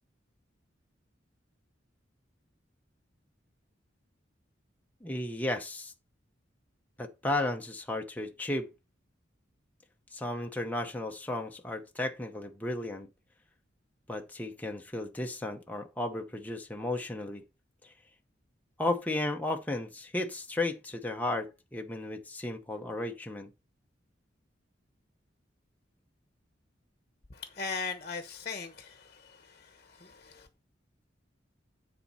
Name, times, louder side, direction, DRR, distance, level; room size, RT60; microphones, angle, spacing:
voice 1, 5.0-5.9 7.0-8.7 10.1-13.1 14.1-17.4 17.8-17.9 18.8-23.5, left 2 dB, 10° left, 0.8 m, -34 dB
voice 2, 27.3-30.5, left 5 dB, 40° left, 1.1 m, -39 dB
10.0 x 4.2 x 5.6 m
head